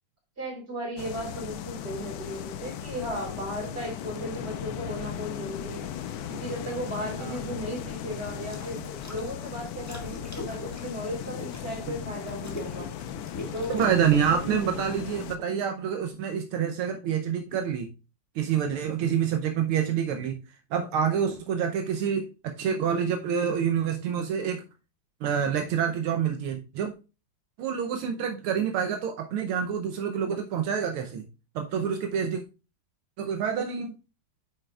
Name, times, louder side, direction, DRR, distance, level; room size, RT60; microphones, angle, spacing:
voice 1, 0.4-5.9 6.3-8.8 9.1-12.9 13.5-13.9 14.3-14.5, equal, 30° right, 3.9 m, -36 dB
sound 1, 1.0-15.4, left 10 dB, 75° left, 1.4 m, -37 dB
sound 2, 5.7-6.3 8.2-9.2 9.6-14.2, equal, 10° left, 1.1 m, -43 dB
voice 2, 13.7-17.9 18.3-20.4 20.7-24.6 25.2-26.9 27.6-31.2 31.5-32.4 33.2-34.0, right 8 dB, 80° right, 1.6 m, -27 dB
9.3 x 6.6 x 2.4 m
omnidirectional pair, 2.4 m